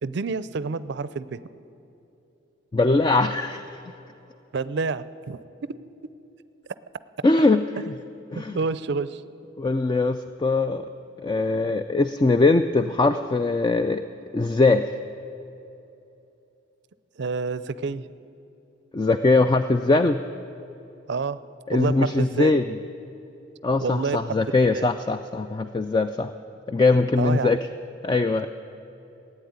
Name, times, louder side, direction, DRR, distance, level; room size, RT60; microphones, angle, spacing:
voice 1, 0.0-1.4 4.5-5.4 7.8-7.9 8.3-9.2 11.6-11.7 17.2-18.1 21.1-21.4 21.7-22.5 23.8-24.3 24.7-24.9 27.2-27.5, right 4 dB, 60° right, 15 dB, 0.5 m, -28 dB
voice 2, 2.7-3.8 7.2-7.6 8.3-8.6 9.6-10.9 11.2-14.0 14.3-14.9 18.9-20.2 21.7-22.6 23.6-26.3 26.7-27.6 28.0-28.5, left 3 dB, 20° left, 9 dB, 0.3 m, -21 dB
15.5 x 9.0 x 9.4 m, 2.9 s
head